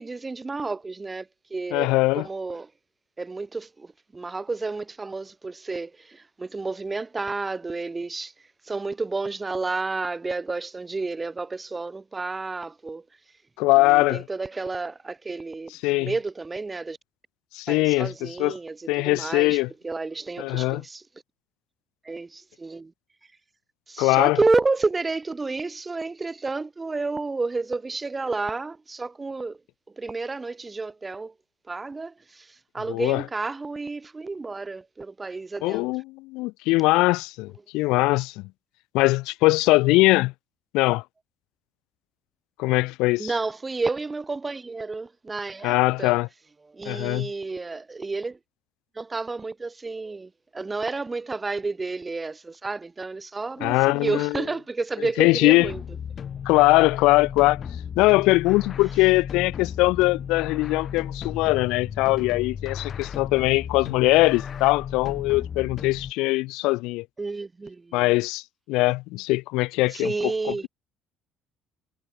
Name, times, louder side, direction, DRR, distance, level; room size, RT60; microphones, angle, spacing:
voice 1, 0.0-2.7 3.2-8.3 8.6-13.0 13.8-17.0 17.7-19.6 19.8-21.0 22.0-22.9 23.9-29.6 30.0-31.3 31.7-35.8 43.2-46.2 46.6-48.4 49.0-55.8 67.2-68.0 69.9-70.7, right 3 dB, 15° right, 2.1 m, -30 dB
voice 2, 1.7-2.2 13.6-14.2 15.8-16.1 17.5-18.5 18.9-19.7 20.4-20.8 24.0-24.4 32.9-33.2 35.6-38.4 38.9-40.3 40.7-41.0 42.6-43.3 45.6-46.3 46.8-47.3 53.6-54.3 55.2-55.7 56.4-57.6 58.0-67.0 67.9-68.4 68.7-70.3, left 22 dB, 85° left, 1.2 m, -21 dB
sound 1, 55.6-66.1, left 8 dB, 35° left, 4.5 m, -35 dB
cardioid pair, 135°, 0 cm